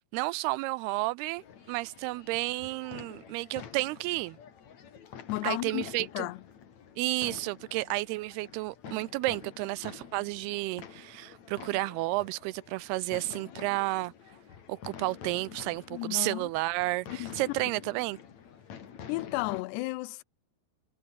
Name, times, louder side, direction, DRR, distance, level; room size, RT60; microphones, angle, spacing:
voice 1, 0.1-4.4 5.4-6.3 7.0-14.1 14.7-18.2, right 20 dB, 80° right, 2.4 m, -32 dB
sound 1, 1.4-19.6, left 7 dB, 45° left, 3.3 m, -48 dB
voice 2, 5.3-5.8 6.1-6.4 15.9-16.5 17.2-17.3 19.1-20.2, left 21 dB, 90° left, 2.7 m, -33 dB
omnidirectional pair, 4.8 m